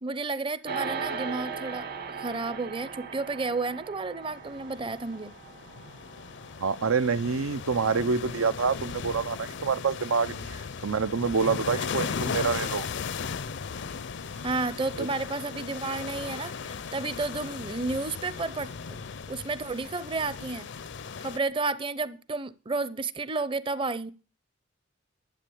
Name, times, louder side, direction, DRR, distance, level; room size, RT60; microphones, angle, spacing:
voice 1, 0.0-1.9 2.2-5.3 14.4-18.7 19.3-20.7 21.2-24.1, right 3 dB, 25° right, 0.6 m, -31 dB
sound 1, 0.6-10.2, right 5 dB, 50° right, 1.3 m, -40 dB
sound 2, 4.5-21.4, left 5 dB, 60° left, 0.5 m, -37 dB
voice 2, 6.6-12.9 15.0-15.1, right 5 dB, 90° right, 0.7 m, -27 dB
sound 3, 11.8-12.4 13.4-20.0, right 2 dB, 65° right, 2.4 m, -56 dB
12.0 x 7.5 x 7.0 m
head